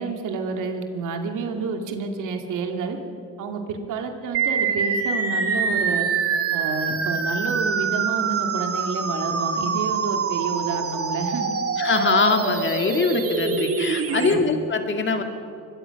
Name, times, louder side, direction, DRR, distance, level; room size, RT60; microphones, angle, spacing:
voice 1, 0.0-3.0 3.4-6.1 6.5-11.5 14.1-14.4, right 4 dB, 85° right, 5 dB, 2.3 m, -29 dB
sound 1, 4.3-14.3, right 5 dB, 50° right, 2.4 m, -25 dB
voice 2, 11.8-15.2, left 4 dB, 40° left, 5 dB, 2.4 m, -22 dB
24.0 x 21.0 x 5.9 m, 2.7 s
cardioid pair, 90°, 30 cm